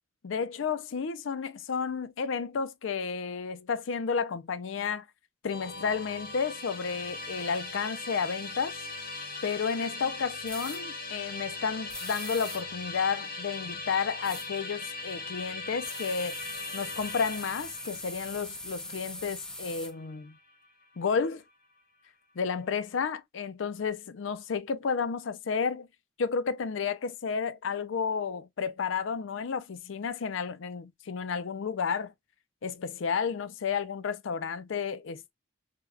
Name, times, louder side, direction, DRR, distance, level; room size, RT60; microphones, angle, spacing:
voice 1, 0.2-5.1 5.4-8.7 9.4-16.3 16.7-20.4 21.0-21.4 22.4-25.9 26.2-32.1 32.6-35.3, left 6 dB, 75° left, 0.4 m, -32 dB
Musical instrument, 5.5-20.7, left 3 dB, 45° left, 0.8 m, -40 dB
sound 1, 10.5-10.8 11.9-12.6 14.2-14.5 15.8-19.9, left 1 dB, 5° left, 0.4 m, -41 dB
3.4 x 2.2 x 2.2 m
head